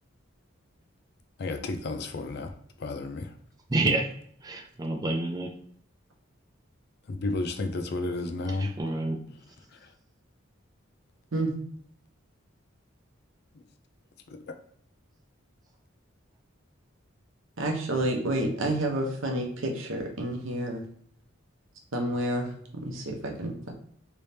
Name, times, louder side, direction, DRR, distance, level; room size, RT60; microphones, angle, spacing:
voice 1, 1.4-2.5 2.8-3.3 7.1-8.7 14.3-14.4, left 2 dB, 50° left, 7 dB, 0.4 m, -31 dB
voice 2, 3.7-4.1 4.4-5.5 8.5-9.2, right 2 dB, 20° right, 3 dB, 0.4 m, -28 dB
voice 3, 17.6-20.8 21.9-22.5 22.8-23.7, right 1 dB, 70° right, 2 dB, 0.8 m, -29 dB
3.3 x 3.1 x 2.7 m, 0.63 s
head